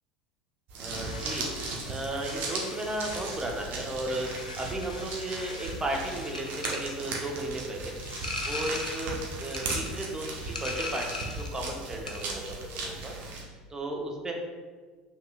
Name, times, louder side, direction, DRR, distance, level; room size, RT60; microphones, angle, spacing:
sound 1, 0.7-13.4, right 3 dB, 45° right, 1.0 m, -37 dB
voice 1, 0.8-1.5 1.9-4.3 4.6-8.0 8.4-13.1 13.7-14.3, right 1 dB, 15° right, 1 dB, 0.9 m, -34 dB
sound 2, 0.9-11.6 11.9-12.4, left 2 dB, 80° left, 0.5 m, -40 dB
5.3 x 3.9 x 2.5 m, 1.5 s
figure-of-eight pair, 70°, 4 cm